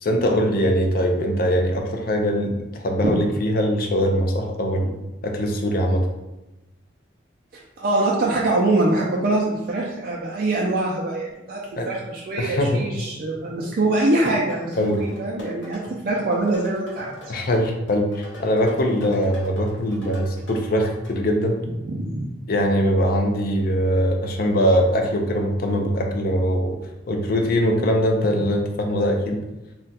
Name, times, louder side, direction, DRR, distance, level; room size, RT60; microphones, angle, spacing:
voice 1, 0.0-5.0 5.2-6.1 11.8-11.9 12.4-12.8 14.8-15.0 17.3-21.6 22.5-26.8 27.1-29.4, equal, 55° left, 3 dB, 0.5 m, -22 dB
voice 2, 7.5-11.6 11.9-17.1 21.8-22.3, right 2 dB, 55° right, -4 dB, 0.4 m, -23 dB
sound 1, 14.2-21.1, left 1 dB, 85° left, 0.9 m, -43 dB
2.4 x 2.2 x 4.0 m, 1.0 s
head